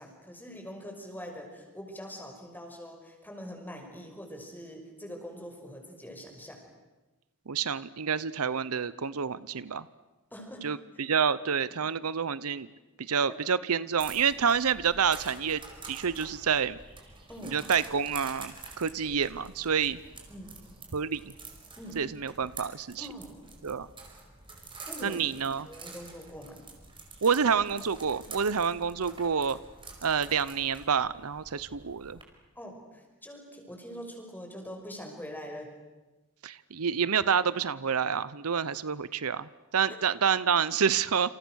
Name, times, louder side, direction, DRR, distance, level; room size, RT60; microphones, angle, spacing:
voice 1, 0.0-6.6 10.3-10.7 13.3-13.4 17.3-17.7 20.3-20.6 21.8-22.1 23.0-23.5 24.5-25.2 25.6-26.6 32.5-35.7 39.9-40.0, equal, 10° left, 2 dB, 5.8 m, -43 dB
voice 2, 7.5-9.9 10.6-12.7 13.0-16.8 17.4-20.0 20.9-21.2 21.9-23.1 23.6-23.9 25.0-25.7 27.2-29.6 30.0-32.2 36.4-41.3, right 6 dB, 75° right, 17 dB, 0.8 m, -28 dB
sound 1, 14.0-32.2, right 3 dB, 25° right, 5.1 m, -48 dB
29.0 x 27.5 x 6.4 m, 1.1 s
head